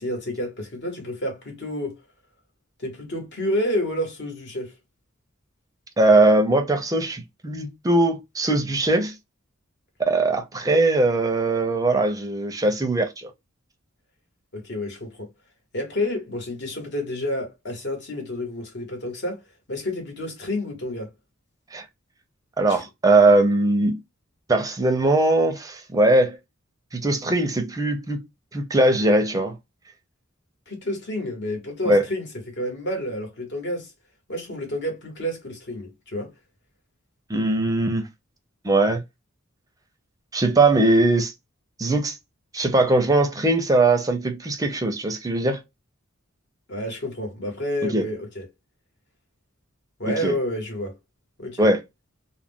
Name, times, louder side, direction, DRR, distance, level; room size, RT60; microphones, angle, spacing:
voice 1, 0.0-2.0 2.8-4.7 14.5-15.3 15.7-19.4 19.7-21.1 22.7-22.9 30.7-33.9 34.3-36.3 46.7-48.5 50.0-51.0 51.4-51.7, left 1 dB, 60° left, 1.1 m, -29 dB
voice 2, 6.0-9.2 10.0-13.3 21.7-21.8 22.6-24.0 24.5-26.4 26.9-28.2 28.5-29.6 31.9-32.0 37.3-38.1 38.6-39.0 40.3-41.3 41.8-42.2 42.5-45.6 47.8-48.0 50.1-50.3 51.6-51.8, right 2 dB, 15° right, 0.5 m, -20 dB
2.3 x 2.1 x 3.4 m
head